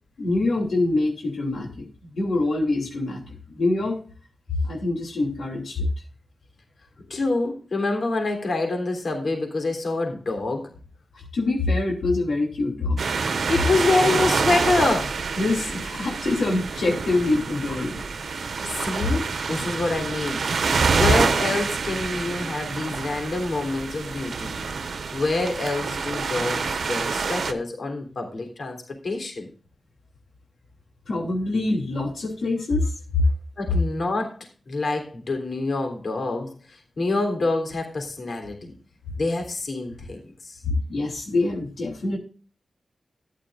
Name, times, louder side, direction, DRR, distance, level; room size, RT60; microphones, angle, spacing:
voice 1, 0.2-4.0 4.7-5.9 11.3-13.0 15.4-18.0 31.1-32.9 40.6-42.2, left 2 dB, 70° left, -1 dB, 3.2 m, -25 dB
voice 2, 7.1-10.7 13.3-15.1 18.7-24.5 25.1-29.5 33.6-34.4 34.7-38.7 39.2-40.6, left 3 dB, 55° left, 4 dB, 3.4 m, -26 dB
sound 1, 13.0-27.5, right 5 dB, 80° right, 1.2 m, -27 dB
14.0 x 10.5 x 2.6 m, 0.37 s
wide cardioid pair, 150°, 0 cm